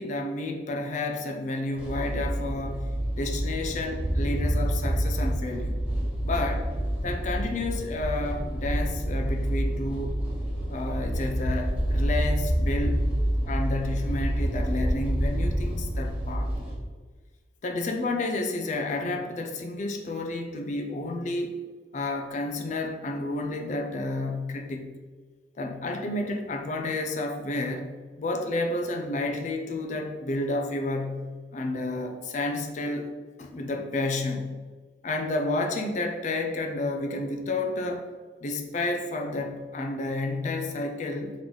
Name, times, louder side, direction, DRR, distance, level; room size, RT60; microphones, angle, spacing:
voice 1, 0.0-5.8 6.2-6.7 7.0-10.2 10.7-13.1 13.4-16.5 17.6-21.6 21.9-24.9 25.6-27.9 28.2-31.2 31.5-33.1 33.4-34.5 35.0-38.1 38.4-41.3, left 2 dB, 40° left, 4 dB, 0.4 m, -30 dB
sound 1, 1.7-16.8, equal, 10° right, 1.1 m, -28 dB
3.8 x 3.1 x 3.8 m, 1.4 s
head